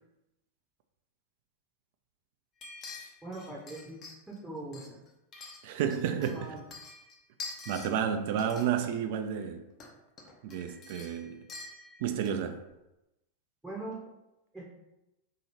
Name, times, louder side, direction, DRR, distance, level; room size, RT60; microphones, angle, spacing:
sound 1, 2.6-4.4 4.7-6.0 6.2-7.9 8.3-8.8 9.7-9.9 10.2-12.5 12.7-12.8, left 3 dB, 30° left, 0.7 m, -46 dB
voice 1, 3.2-4.0 4.3-5.0 6.2-6.6 13.6-14.0 14.5-14.7, right 2 dB, 5° right, 0.8 m, -41 dB
voice 2, 5.6-6.5 7.7-9.6 10.4-11.4 12.0-12.6, right 8 dB, 50° right, 0.4 m, -31 dB
2.9 x 2.7 x 4.3 m
figure-of-eight pair, 90°, 0 cm